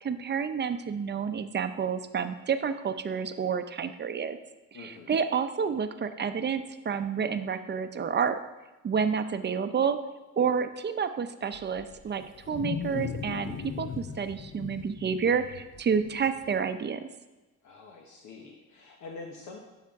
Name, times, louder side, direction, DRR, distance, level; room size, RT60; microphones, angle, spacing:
voice 1, 0.0-4.4 4.7-8.4 8.8-10.0 10.4-17.1, right 6 dB, 35° right, 9 dB, 0.6 m, -29 dB
voice 2, 4.7-5.2 17.6-19.6, left 3 dB, 75° left, 1 dB, 1.1 m, -45 dB
Wild animals, 11.5-16.6, left 7 dB, 40° left, 0.6 m, -38 dB
12.0 x 5.7 x 3.6 m, 1.1 s
cardioid pair, 90°, 30 cm